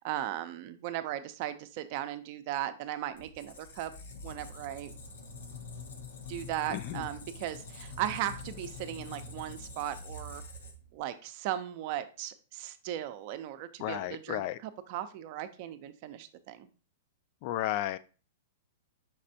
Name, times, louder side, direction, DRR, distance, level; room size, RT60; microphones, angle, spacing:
voice 1, 0.0-3.9 4.2-5.0 6.3-10.4 10.9-16.7, right 12 dB, 50° right, 11 dB, 0.5 m, -37 dB
Squeak, 3.2-11.0, left 2 dB, 80° left, 0.8 m, -45 dB
voice 2, 6.7-7.0 13.8-14.6 17.4-18.0, left 13 dB, 50° left, 15 dB, 0.3 m, -33 dB
5.3 x 3.2 x 2.7 m, 0.36 s
hypercardioid pair, 125°, 0 cm